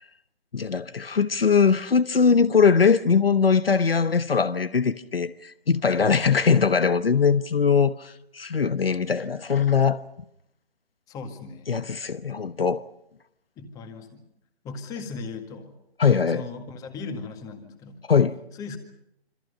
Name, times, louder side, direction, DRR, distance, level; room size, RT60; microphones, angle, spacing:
voice 1, 0.5-10.0 11.7-12.8 16.0-16.4 18.1-18.4, left 6 dB, 65° left, 1.1 m, -21 dB
voice 2, 11.1-11.7 13.6-14.2 14.6-15.8 16.3-18.0 18.5-18.8, left 4 dB, 10° left, 1.9 m, -37 dB
26.5 x 25.5 x 5.5 m
figure-of-eight pair, 140°, 32 cm